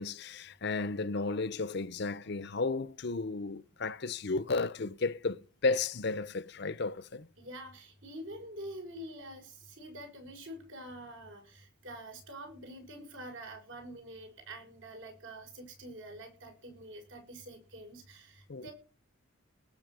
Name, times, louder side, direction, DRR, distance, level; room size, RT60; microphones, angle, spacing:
voice 1, 0.0-7.3 18.5-18.7, left 3 dB, 55° left, 0.6 m, -33 dB
voice 2, 7.4-18.7, right 1 dB, 70° right, 6.3 m, -46 dB
19.0 x 7.4 x 6.2 m
head